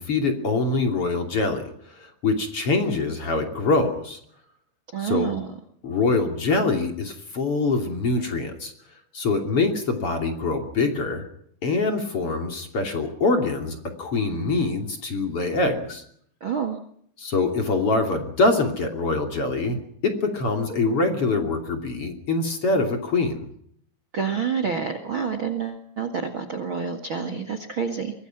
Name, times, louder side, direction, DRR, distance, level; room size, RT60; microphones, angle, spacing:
voice 1, 0.0-4.2 5.0-5.3 5.8-8.7 9.1-11.2 11.6-16.0 17.2-23.5, left 3 dB, 35° left, 5 dB, 3.0 m, -24 dB
voice 2, 4.9-5.5 16.4-16.8 24.1-28.1, right 6 dB, 85° right, 9 dB, 1.1 m, -28 dB
24.5 x 21.0 x 6.0 m, 0.67 s
omnidirectional pair, 5.7 m